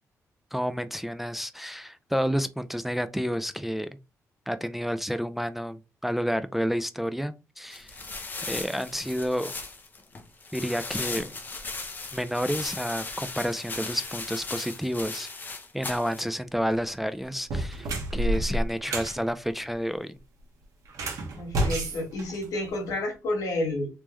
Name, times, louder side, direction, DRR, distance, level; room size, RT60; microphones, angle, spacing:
voice 1, 0.5-3.9 4.5-7.9 8.5-9.5 10.5-11.3 12.1-15.3 15.7-20.1, equal, 5° right, 0.3 m, -30 dB
sound 1, 7.7-16.2, left 3 dB, 30° left, 0.8 m, -37 dB
sound 2, 16.6-16.8 17.4-19.2 20.8-22.9, right 1 dB, 75° right, 1.3 m, -30 dB
voice 2, 21.4-23.9, left 1 dB, 85° left, 1.5 m, -30 dB
3.5 x 3.1 x 3.1 m
cardioid pair, 110°, 6 cm